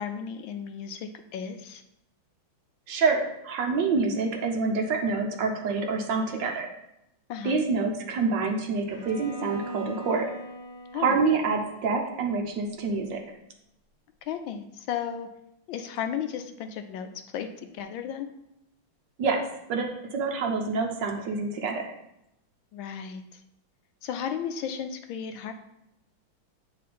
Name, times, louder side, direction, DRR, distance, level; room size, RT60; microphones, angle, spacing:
voice 1, 0.0-1.8 7.3-7.6 10.9-11.1 14.3-15.3 15.7-17.5 17.7-18.3 22.7-23.4 24.0-25.5, left 8 dB, 80° left, 7 dB, 1.3 m, -34 dB
voice 2, 2.9-6.7 7.4-10.3 10.9-13.2 19.2-19.4 19.7-21.9, right 4 dB, 65° right, 3 dB, 1.4 m, -27 dB
Bowed string instrument, 8.9-12.9, equal, 30° right, 1.4 m, -42 dB
8.5 x 3.7 x 4.2 m, 0.85 s
omnidirectional pair, 2.3 m